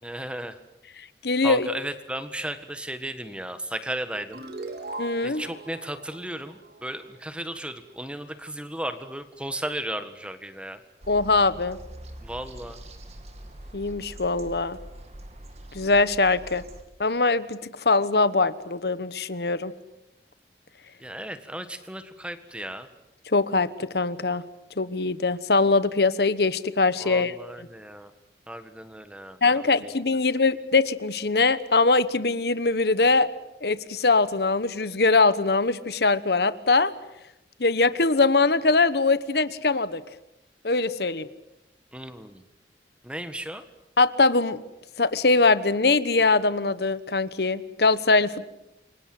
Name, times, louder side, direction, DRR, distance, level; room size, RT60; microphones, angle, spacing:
voice 1, 0.0-0.6 1.4-4.4 5.2-10.8 12.2-12.8 21.0-22.9 27.0-28.1 28.5-29.9 41.9-42.4 43.0-43.7, right 1 dB, 5° right, 10 dB, 1.5 m, -35 dB
voice 2, 1.2-1.7 5.0-5.4 11.1-11.8 13.7-14.8 15.7-16.6 17.0-19.7 23.3-24.4 24.8-27.3 29.4-33.3 33.6-36.9 37.6-40.0 40.6-41.3 44.0-44.6 45.0-48.5, left 3 dB, 70° left, 15 dB, 1.1 m, -22 dB
sound 1, 4.3-7.5, right 2 dB, 65° right, 3.5 m, -40 dB
sound 2, 11.0-16.8, right 1 dB, 35° right, 2.8 m, -44 dB
28.5 x 24.5 x 7.8 m, 0.90 s
head